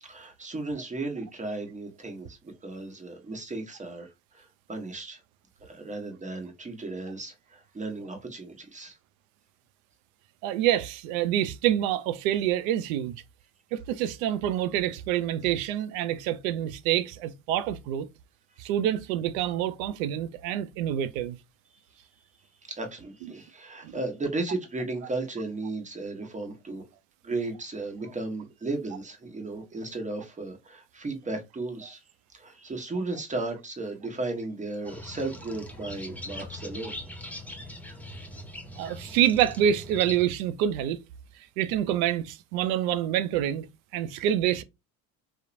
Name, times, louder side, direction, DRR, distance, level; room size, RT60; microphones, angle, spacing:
voice 1, 0.0-5.2 5.6-9.0 22.7-26.8 27.2-32.0 32.3-37.7, right 2 dB, 15° right, 0.9 m, -35 dB
voice 2, 10.4-13.2 13.7-18.1 18.6-21.4 23.8-23.9 38.8-41.0 41.6-43.7 43.9-44.6, right 11 dB, 70° right, 0.5 m, -27 dB
sound 1, 34.9-40.2, left 1 dB, 5° left, 0.6 m, -41 dB
2.9 x 2.0 x 2.4 m
hypercardioid pair, 65°, 44 cm